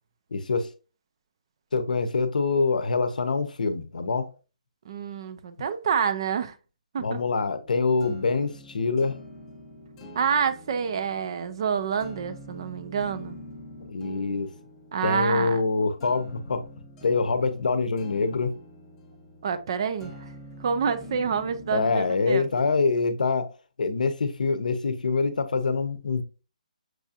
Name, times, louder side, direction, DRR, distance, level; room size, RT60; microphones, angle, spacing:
voice 1, 0.3-0.7 1.7-4.3 7.0-9.2 13.9-14.5 15.0-16.6 17.0-18.5 21.7-23.5 23.8-26.2, left 4 dB, 80° left, 0.6 m, -25 dB
voice 2, 4.9-6.5 6.9-7.2 10.1-13.4 14.9-15.6 19.4-20.2 20.6-22.4, right 7 dB, 35° right, 0.4 m, -28 dB
sound 1, 7.5-21.9, left 1 dB, 10° left, 0.6 m, -46 dB
6.1 x 2.4 x 2.7 m
hypercardioid pair, 165°, 4 cm